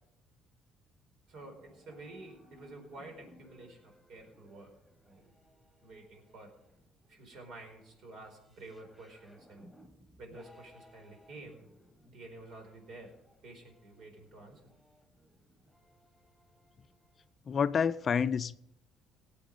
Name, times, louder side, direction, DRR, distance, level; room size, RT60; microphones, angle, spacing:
sound 1, 1.3-17.3, equal, 5° right, 2.3 m, -63 dB
voice 1, 1.3-4.7 5.0-5.3 5.8-6.5 7.1-9.7 10.2-11.7 12.0-13.1 13.4-14.6, right 2 dB, 65° right, 4.7 m, -50 dB
voice 2, 17.5-18.6, left 6 dB, 40° left, 0.4 m, -28 dB
18.5 x 8.4 x 5.3 m
cardioid pair, 115°, 0 cm